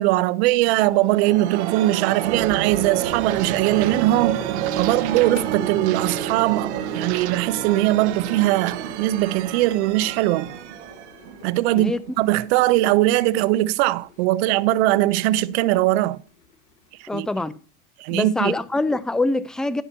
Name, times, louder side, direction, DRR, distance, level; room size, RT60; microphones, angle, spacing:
voice 1, 0.0-4.4 4.8-10.5 11.4-16.2 17.0-17.3 18.0-18.5, right 16 dB, 70° right, 0.8 m, -20 dB
sound 1, 0.7-12.2, right 11 dB, 85° right, 1.4 m, -29 dB
sound 2, 2.6-17.1, left 5 dB, 60° left, 4.8 m, -43 dB
voice 2, 17.1-17.6 18.1-19.8, left 2 dB, ahead, 0.4 m, -24 dB
15.0 x 5.7 x 4.4 m
supercardioid pair, 135°, 33 cm